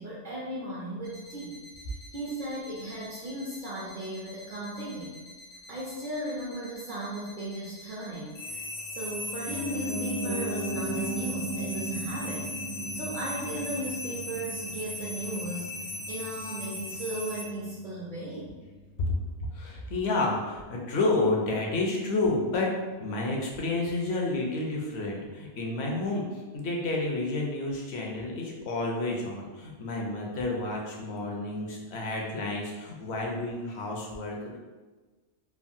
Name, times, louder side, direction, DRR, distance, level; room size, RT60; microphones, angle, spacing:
voice 1, 0.0-1.6 2.1-5.2 5.7-12.5 12.9-15.8 16.1-18.5, right 1 dB, 55° right, -6 dB, 0.6 m, -36 dB
sound 1, 1.0-17.5, left 1 dB, 55° left, 0.5 m, -39 dB
Piano, 9.5-19.5 19.8-19.9, right 1 dB, 80° right, 0.9 m, -37 dB
voice 2, 19.0-22.7 23.0-26.2 26.5-34.6, left 2 dB, 70° left, -1 dB, 0.9 m, -30 dB
3.4 x 2.0 x 2.5 m, 1.3 s
omnidirectional pair, 1.2 m